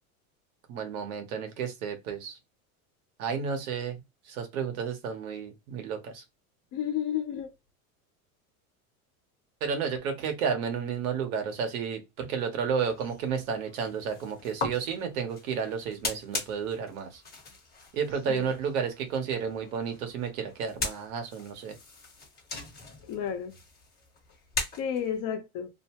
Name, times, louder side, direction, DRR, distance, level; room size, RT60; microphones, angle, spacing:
voice 1, 0.7-2.4 3.2-6.2 9.6-17.2 17.9-21.7, right 6 dB, 75° right, 1.1 m, -32 dB
voice 2, 6.7-7.5 18.3-18.5 23.1-23.5 24.8-25.7, left 9 dB, 50° left, 0.9 m, -31 dB
sound 1, 12.9-25.2, left 3 dB, 20° left, 1.0 m, -40 dB
2.7 x 2.2 x 2.9 m
supercardioid pair, 110°, 43 cm